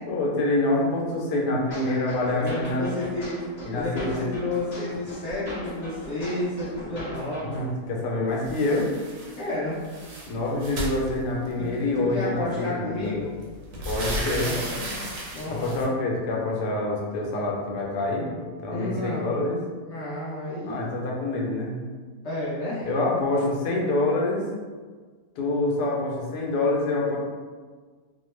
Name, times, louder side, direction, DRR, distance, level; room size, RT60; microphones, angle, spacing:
voice 1, 0.1-2.9 3.7-4.2 7.5-8.9 10.3-13.1 13.8-14.5 15.4-19.6 20.7-21.7 22.9-24.4 25.4-27.2, left 2 dB, 80° left, -2 dB, 1.2 m, -26 dB
sound 1, 1.7-7.7, equal, 30° left, 0.9 m, -39 dB
voice 2, 1.8-3.4 3.7-7.5 9.4-9.8 11.6-13.3 14.2-15.7 18.7-19.6 19.9-20.8 22.2-22.9, left 2 dB, 60° left, -8 dB, 0.8 m, -31 dB
sound 2, 8.4-9.4 9.7-11.7 12.6-12.7 13.1-15.8, right 1 dB, 60° right, 0.7 m, -34 dB
2.9 x 2.1 x 3.1 m, 1.5 s
omnidirectional pair, 1.7 m